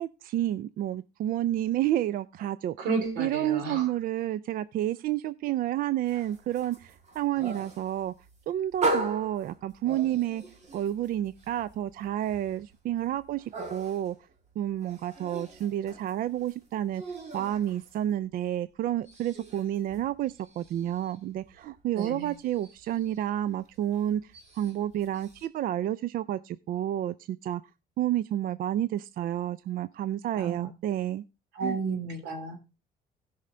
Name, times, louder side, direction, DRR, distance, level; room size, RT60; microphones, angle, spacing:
voice 1, 0.0-2.8 3.2-8.1 8.5-10.4 10.7-14.2 14.6-17.0 17.3-27.6 28.0-31.2 31.6-31.8, right 12 dB, 60° right, 0.4 m, -30 dB
voice 2, 2.8-3.9 21.9-22.3 30.3-30.7 31.5-32.6, right 4 dB, 90° right, 2.9 m, -32 dB
sound 1, 6.1-18.6 18.8-25.5, right 2 dB, 40° right, 2.2 m, -39 dB
16.5 x 5.7 x 3.7 m
cardioid pair, 110°, 17 cm